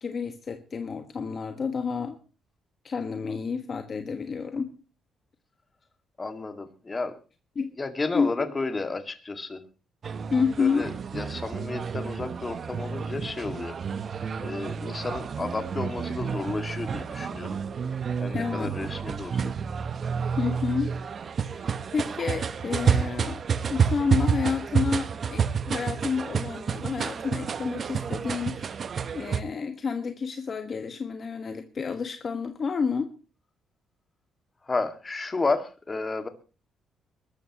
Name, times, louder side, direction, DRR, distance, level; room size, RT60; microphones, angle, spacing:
voice 1, 0.0-2.2 2.8-4.7 7.5-7.7 8.1-8.5 10.3-10.9 18.3-18.7 20.4-20.9 21.5-23.4 23.7-28.8 29.1-33.1, left 5 dB, 45° left, 7 dB, 1.4 m, -30 dB
voice 2, 6.2-7.1 7.8-9.6 10.6-13.8 14.4-17.6 18.2-19.5 34.6-36.3, left 3 dB, 25° left, 8 dB, 2.0 m, -32 dB
sound 1, 10.0-29.4, right 6 dB, 50° right, 0.9 m, -30 dB
23.0 x 13.0 x 3.0 m, 0.34 s
cardioid pair, 90°, 0 cm